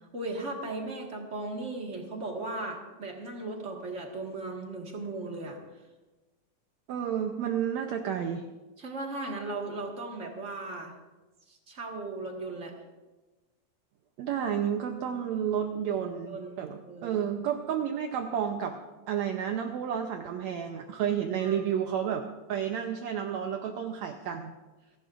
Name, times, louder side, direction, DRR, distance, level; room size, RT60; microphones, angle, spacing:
voice 1, 0.0-5.6 8.8-10.9 11.5-12.7 15.9-17.2 21.4-21.6, right 2 dB, 40° right, 0 dB, 1.0 m, -37 dB
voice 2, 6.9-8.4 14.2-18.8 19.1-24.5, right 8 dB, 80° right, 4 dB, 1.6 m, -31 dB
29.0 x 11.5 x 2.5 m, 1.2 s
omnidirectional pair, 4.1 m